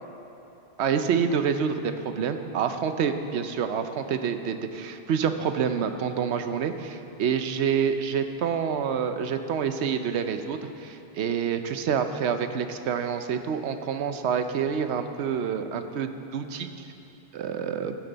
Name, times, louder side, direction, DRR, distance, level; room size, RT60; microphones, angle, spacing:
voice 1, 0.8-16.7 17.3-17.9, right 7 dB, 80° right, 8 dB, 1.0 m, -27 dB
15.0 x 10.0 x 4.0 m, 2.9 s
omnidirectional pair, 1.1 m